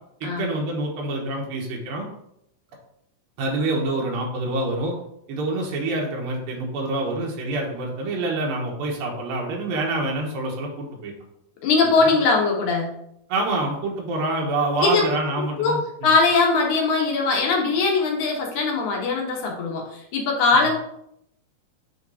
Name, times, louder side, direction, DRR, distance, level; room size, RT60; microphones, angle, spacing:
voice 1, 0.2-2.1 3.4-5.0 5.3-11.1 12.0-12.1 13.3-15.8 20.5-20.7, right 2 dB, 85° right, -1 dB, 2.9 m, -26 dB
voice 2, 11.6-12.9 14.8-15.0 15.6-20.8, left 4 dB, 65° left, 0 dB, 2.3 m, -21 dB
7.7 x 5.7 x 2.7 m, 0.75 s
omnidirectional pair, 4.0 m